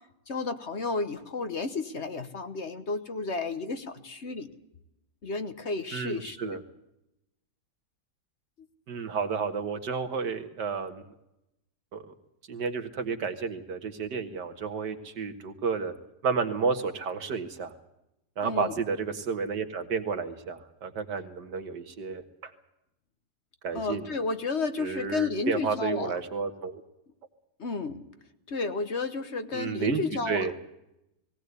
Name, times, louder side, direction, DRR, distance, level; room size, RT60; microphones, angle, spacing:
voice 1, 0.3-4.5 5.2-6.6 18.4-18.7 23.7-26.2 27.6-28.0 28.5-30.6, left 3 dB, 45° left, 9 dB, 1.3 m, -32 dB
voice 2, 5.9-6.6 8.9-11.0 11.9-12.1 12.5-15.9 16.2-17.7 18.4-22.5 23.6-24.0 24.8-26.8 29.5-30.6, right 5 dB, 85° right, 7 dB, 2.2 m, -31 dB
19.0 x 18.0 x 8.3 m, 0.88 s
omnidirectional pair, 1.8 m